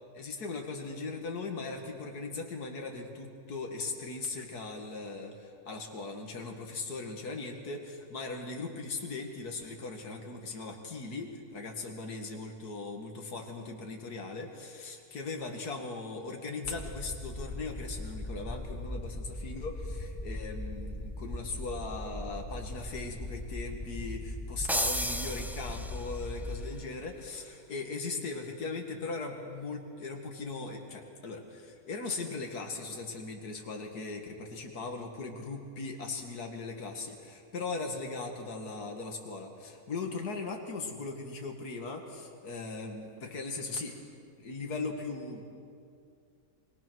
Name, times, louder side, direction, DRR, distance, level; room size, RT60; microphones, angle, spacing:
voice 1, 0.1-44.0 44.4-45.5, left 3 dB, 80° left, 2 dB, 2.4 m, -39 dB
sound 1, 16.6-26.6, left 1 dB, 20° left, 1.1 m, -39 dB
sound 2, 24.7-26.3, equal, ahead, 0.5 m, -33 dB
25.5 x 21.5 x 6.2 m, 2.4 s
omnidirectional pair, 1.6 m